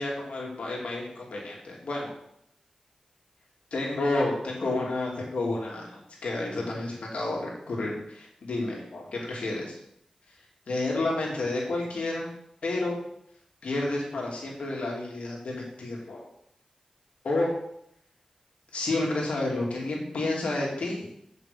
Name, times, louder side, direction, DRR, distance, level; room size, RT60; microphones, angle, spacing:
voice 1, 0.0-2.1 3.7-9.8 10.7-12.3 12.6-13.0 13.6-16.2 17.2-17.5 18.7-21.1, left 2 dB, 85° left, -2 dB, 2.9 m, -30 dB
8.9 x 6.5 x 5.3 m, 0.73 s
wide cardioid pair, 80°, 2 cm